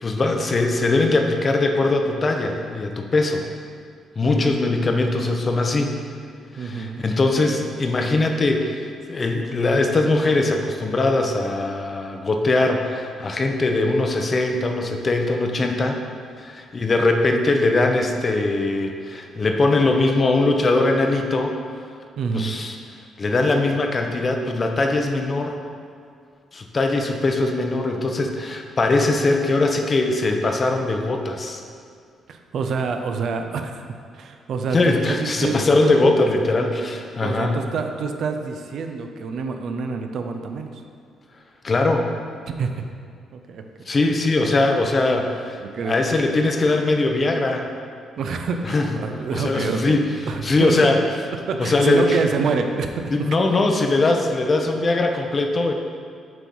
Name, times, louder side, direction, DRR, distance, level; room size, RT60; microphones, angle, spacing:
voice 1, 0.0-3.4 4.2-5.9 6.5-16.0 16.4-21.6 22.3-22.8 23.2-25.6 26.5-31.6 34.7-37.6 41.6-42.1 43.9-47.7 48.6-48.9 49.3-50.1 50.4-51.0 51.6-52.2 53.1-55.7, left 2 dB, 35° left, 3 dB, 0.7 m, -21 dB
voice 2, 4.2-4.6 6.6-7.0 22.2-22.5 32.3-33.8 34.1-35.9 37.2-40.7 42.6-42.8 43.3-43.6 45.6-45.9 48.2-50.8 51.5-53.4, right 5 dB, 65° right, 5 dB, 0.5 m, -27 dB
7.6 x 3.1 x 5.4 m, 2.2 s
cardioid pair, 90°, 0 cm